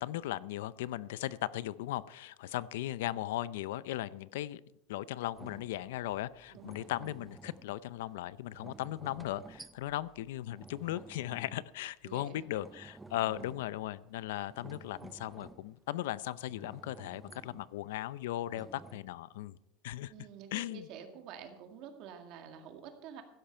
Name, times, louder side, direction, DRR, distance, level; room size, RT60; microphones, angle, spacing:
voice 1, 0.0-4.6 4.9-19.6 19.8-20.1 20.5-20.9, left 14 dB, 90° left, 18 dB, 0.5 m, -37 dB
sound 1, 5.3-12.1 12.4-13.9 14.3-16.1 16.5-17.7 18.5-19.0, right 3 dB, 5° right, 0.4 m, -53 dB
voice 2, 6.5-7.0 12.0-12.5 13.2-13.7 20.1-23.2, right 7 dB, 40° right, 5 dB, 1.8 m, -49 dB
16.0 x 12.0 x 4.4 m, 0.83 s
supercardioid pair, 175°, 0 cm